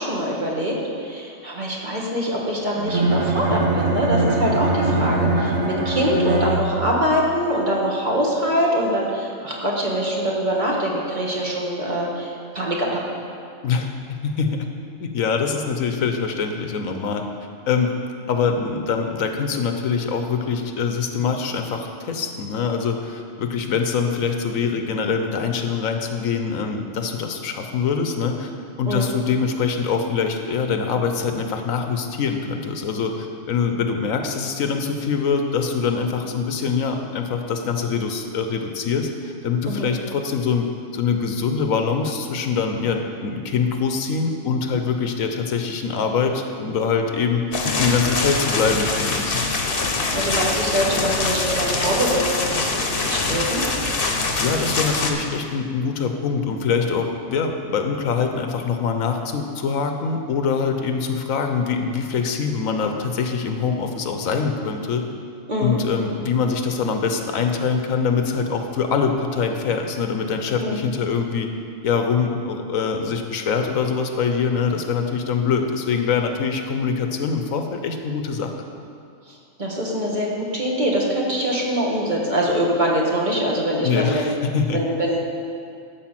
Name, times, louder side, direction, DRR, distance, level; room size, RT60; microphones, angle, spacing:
voice 1, 0.0-13.0 28.8-29.1 39.7-39.9 50.1-53.6 65.5-65.8 70.6-70.8 79.3-84.3 84.7-85.2, equal, 35° right, -3 dB, 1.6 m, -24 dB
Bowed string instrument, 2.8-7.1, right 2 dB, 85° right, 1.7 m, -22 dB
voice 2, 13.6-14.7 15.0-17.2 17.7-18.0 18.3-28.5 28.8-40.7 40.9-49.4 54.1-65.0 65.6-71.5 71.8-78.5 83.8-84.8, left 5 dB, 85° left, 5 dB, 1.3 m, -24 dB
sound 1, 47.5-55.1, left 3 dB, 45° left, 1.1 m, -24 dB
12.0 x 5.0 x 7.5 m, 2.4 s
omnidirectional pair, 1.4 m